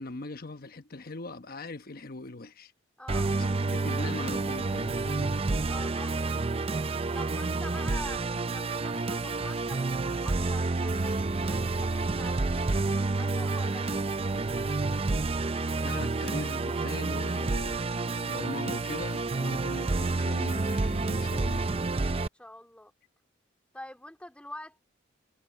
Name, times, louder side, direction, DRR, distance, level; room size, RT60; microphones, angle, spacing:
voice 1, 0.0-2.7 3.4-5.3 7.6-7.7 15.8-17.9 18.2-21.7, left 2 dB, 50° left, 1.0 m, -40 dB
voice 2, 3.0-3.3 5.7-6.3 7.1-15.2 22.3-22.9 23.7-24.8, left 1 dB, 5° left, 2.8 m, -46 dB
Musical instrument, 3.1-22.3, right 3 dB, 30° right, 0.5 m, -29 dB
head